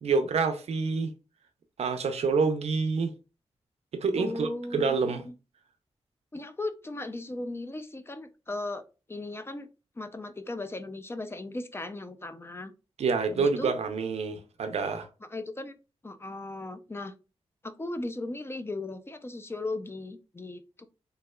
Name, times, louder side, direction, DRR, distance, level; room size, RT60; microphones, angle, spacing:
voice 1, 0.0-1.1 1.8-3.1 3.9-5.2 13.0-15.1, right 4 dB, 80° right, 0.5 m, -27 dB
voice 2, 4.2-5.4 6.3-9.7 10.0-12.7 13.3-13.7 15.2-15.8 16.0-17.1 17.6-20.9, left 2 dB, 25° left, 0.4 m, -37 dB
3.4 x 3.1 x 2.2 m
cardioid pair, 70°, 11 cm